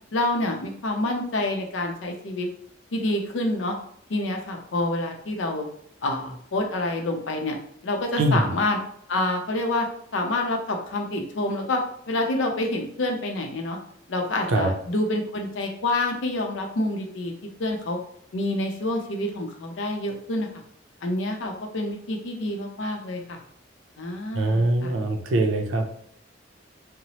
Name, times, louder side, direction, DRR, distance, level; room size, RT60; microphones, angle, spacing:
voice 1, 0.1-2.5 2.9-3.7 4.1-5.7 6.0-7.6 7.8-8.8 9.1-9.9 10.1-11.8 12.1-13.8 14.1-17.3 17.6-18.0 18.3-20.5 21.0-23.4 24.0-24.9, left 2 dB, 80° left, 2 dB, 0.5 m, -27 dB
voice 2, 8.2-8.5 14.5-14.7 24.3-25.9, right 2 dB, 80° right, 3 dB, 0.5 m, -22 dB
2.9 x 2.0 x 2.8 m, 0.68 s
head